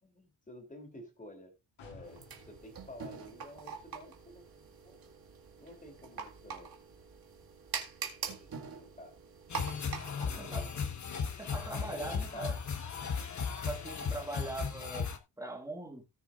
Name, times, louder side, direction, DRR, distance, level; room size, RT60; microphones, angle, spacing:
voice 1, 0.0-1.5 1.8-4.4 4.8-5.0 5.6-6.7 8.3-9.1 10.2-11.0 11.9-12.4, left 1 dB, 15° left, 3.1 m, -51 dB
sound 1, 1.8-5.5 5.9-6.0, left 3 dB, 90° left, 7.4 m, -59 dB
sound 2, 2.0-10.9, right 6 dB, 50° right, 2.1 m, -44 dB
sound 3, 9.5-15.2, left 6 dB, 40° left, 1.3 m, -36 dB
voice 2, 10.3-10.7 11.4-12.6 13.6-16.0, right 2 dB, 5° right, 1.9 m, -41 dB
18.0 x 6.9 x 2.5 m
wide cardioid pair, 160°, 46 cm